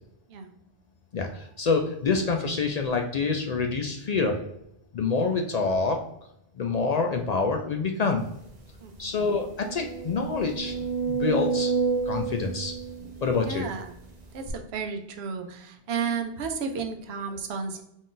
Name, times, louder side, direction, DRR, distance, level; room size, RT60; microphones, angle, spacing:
voice 1, 1.1-4.4 4.9-6.0 6.6-8.2 9.0-11.7 12.1-12.7 13.2-13.7, left 4 dB, 55° left, 3 dB, 0.4 m, -26 dB
sound 1, 8.5-8.6 8.9-9.0 9.6-13.8 14.5-14.6, right 5 dB, 45° right, 0.7 m, -29 dB
voice 2, 8.8-9.1 13.0-13.1 13.5-13.9 14.3-17.8, right 5 dB, 80° right, 6 dB, 0.9 m, -33 dB
4.0 x 2.5 x 3.7 m, 0.79 s
omnidirectional pair, 1.1 m